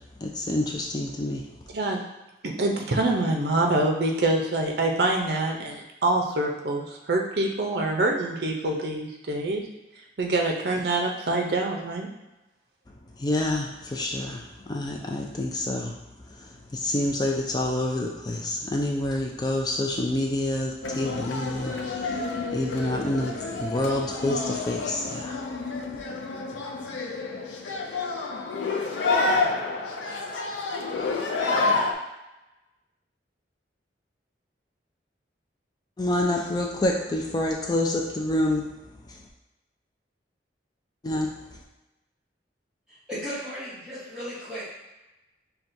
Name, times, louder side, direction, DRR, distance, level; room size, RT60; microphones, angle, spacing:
voice 1, 0.2-1.4 13.2-15.9 16.7-22.2 22.5-25.4 36.0-38.6 41.0-41.3, left 1 dB, 20° left, 0 dB, 0.3 m, -27 dB
voice 2, 2.4-9.6 10.2-12.1, right 2 dB, 60° right, 1 dB, 0.6 m, -25 dB
sound 1, 20.8-31.9, left 3 dB, 85° left, 0.5 m, -29 dB
voice 3, 42.9-44.7, equal, 5° right, -14 dB, 1.1 m, -36 dB
5.9 x 2.3 x 2.6 m, 1.0 s
head